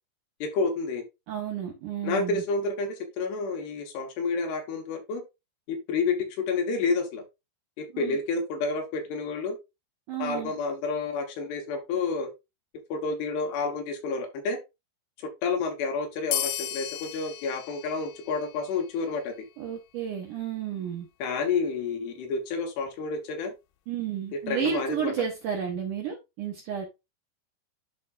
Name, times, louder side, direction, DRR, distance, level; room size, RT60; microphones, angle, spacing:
voice 1, 0.4-1.0 2.0-5.2 5.7-7.2 7.8-9.6 10.2-12.3 12.9-14.6 15.2-19.3 21.2-23.5 24.3-25.1, left 4 dB, 70° left, 4 dB, 3.1 m, -29 dB
voice 2, 1.3-2.4 7.9-8.2 10.1-10.5 19.6-21.1 23.9-26.9, right 9 dB, 70° right, 0 dB, 2.0 m, -32 dB
sound 1, 16.3-19.3, left 12 dB, 90° left, 2.9 m, -35 dB
11.0 x 4.0 x 2.4 m, 0.23 s
omnidirectional pair, 5.1 m